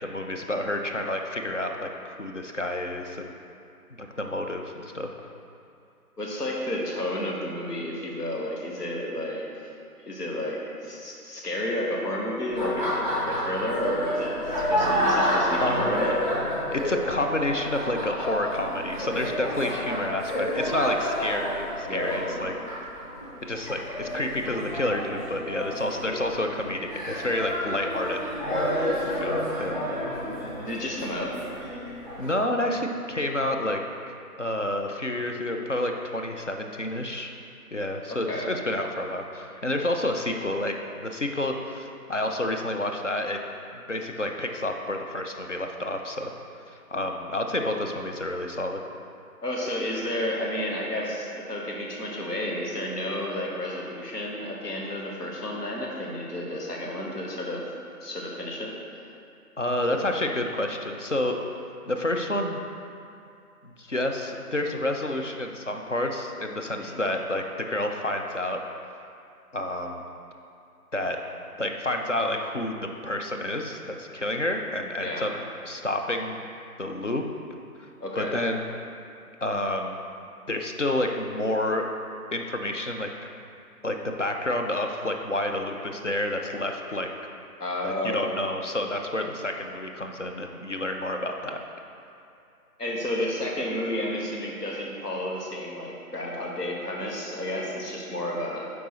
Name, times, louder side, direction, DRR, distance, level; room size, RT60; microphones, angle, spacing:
voice 1, 0.0-3.3 4.0-5.1 15.6-16.0 16.7-22.5 23.4-28.8 29.2-29.8 32.2-33.8 34.4-37.3 37.7-40.7 41.0-43.4 43.9-46.3 46.9-48.8 59.6-61.4 61.9-62.6 63.6-68.6 69.5-70.0 70.9-71.2 71.6-72.8 73.0-75.3 75.6-76.4 76.8-77.2 78.2-78.6 79.4-80.0 80.5-81.9 82.3-83.1 83.8-87.1 87.8-91.6, left 1 dB, 55° left, 3 dB, 0.5 m, -29 dB
voice 2, 6.2-9.5 10.0-16.2 16.5-16.6 19.6-19.9 21.9-22.3 30.6-31.4 38.1-38.6 49.4-57.6 58.0-58.8 66.7-67.0 75.0-75.3 78.0-78.4 87.6-88.3 92.8-98.7, left 1 dB, 80° left, -2 dB, 1.4 m, -31 dB
Laughter, 12.5-32.3, equal, 30° left, 1.2 m, -30 dB
7.8 x 4.7 x 3.1 m, 2.5 s
figure-of-eight pair, 180°, 46 cm